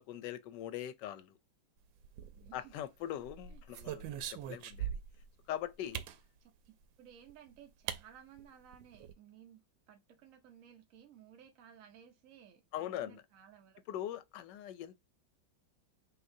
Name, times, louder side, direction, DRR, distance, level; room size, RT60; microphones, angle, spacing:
voice 1, 0.0-1.4 2.5-5.0 5.5-6.0 12.7-13.2 13.9-15.0, left 11 dB, 75° left, 1.2 m, -42 dB
sound 1, 2.0-2.7 3.3-5.3 5.9-6.2 7.3-7.4 7.9-8.0 8.4-8.5 8.7-9.1, right 9 dB, 85° right, 1.3 m, -41 dB
voice 2, 2.3-2.8 3.5-3.6 6.4-9.6 9.9-14.0, right 9 dB, 60° right, 0.9 m, -58 dB
5.7 x 2.8 x 2.6 m
omnidirectional pair, 2.0 m